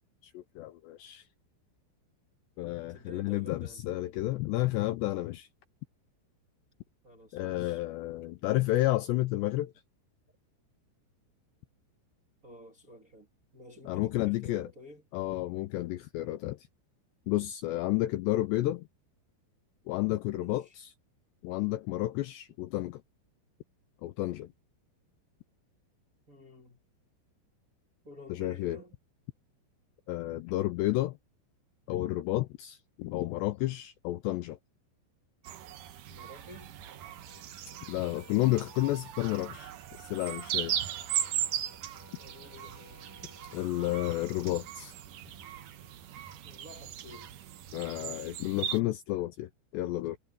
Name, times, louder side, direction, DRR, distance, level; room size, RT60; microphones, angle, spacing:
voice 1, 0.2-1.3 2.6-5.5 7.3-9.7 13.9-14.7 15.1-16.7 17.3-18.9 19.9-20.9 21.4-23.0 24.0-24.5 28.3-28.8 30.1-31.2 31.9-34.6 37.9-39.7 40.0-40.8 43.5-45.0 47.7-50.2, left 17 dB, 85° left, 2.5 m, -31 dB
voice 2, 2.9-3.8 7.0-7.8 12.4-13.3 13.5-15.0 20.3-20.8 22.5-22.6 26.3-26.8 28.0-28.9 36.1-36.8 42.2-43.0 46.4-47.3 48.0-48.4, left 1 dB, 30° right, 1.6 m, -51 dB
sound 1, 35.4-48.8, right 10 dB, 75° right, 1.9 m, -38 dB
sound 2, 37.3-39.0 40.7-43.7, left 3 dB, 45° left, 5.7 m, -58 dB
omnidirectional pair, 5.7 m